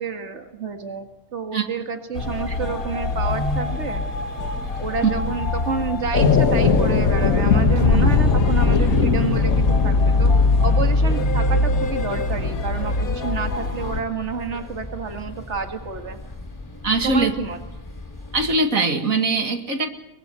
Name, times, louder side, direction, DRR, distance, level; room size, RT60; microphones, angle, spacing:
voice 1, 0.0-4.0 4.8-10.3 10.6-16.2 17.0-17.6, right 5 dB, 55° right, 5 dB, 2.2 m, -29 dB
sound 1, 2.1-14.0, left 2 dB, 80° left, 2.2 m, -23 dB
sound 2, 4.6-18.6, left 2 dB, 15° left, 4.6 m, -40 dB
sound 3, 6.1-12.3, left 4 dB, 65° left, 1.9 m, -20 dB
voice 2, 16.8-17.3 18.3-19.9, right 3 dB, 75° right, 5 dB, 2.5 m, -21 dB
23.5 x 20.5 x 8.2 m, 0.90 s
omnidirectional pair, 1.5 m